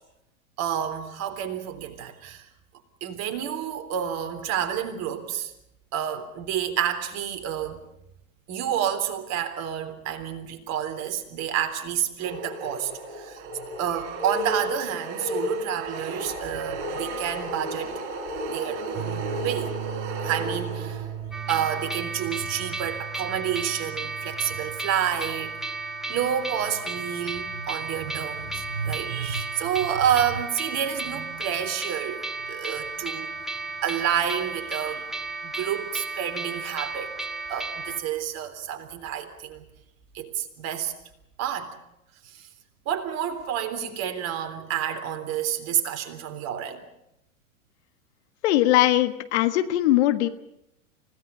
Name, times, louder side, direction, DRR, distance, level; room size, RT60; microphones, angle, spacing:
voice 1, 0.6-2.5 3.0-5.5 5.9-7.8 8.5-13.4 13.8-18.0 18.5-19.8 20.2-21.1 21.5-25.5 26.1-33.3 33.8-35.1 35.4-37.1 37.5-39.6 40.1-40.9 41.4-41.7 42.2-42.5 42.9-46.8, right 9 dB, 40° right, 6 dB, 3.5 m, -29 dB
sound 1, 12.2-21.3, right 1 dB, 55° right, 7.7 m, -33 dB
sound 2, 18.9-28.9, right 11 dB, 20° right, 5.3 m, -39 dB
sound 3, 21.3-38.0, right 3 dB, ahead, 1.5 m, -34 dB
voice 2, 48.4-50.3, left 14 dB, 55° left, 11 dB, 1.6 m, -20 dB
29.0 x 17.5 x 6.8 m, 0.83 s
hypercardioid pair, 100°, 40 cm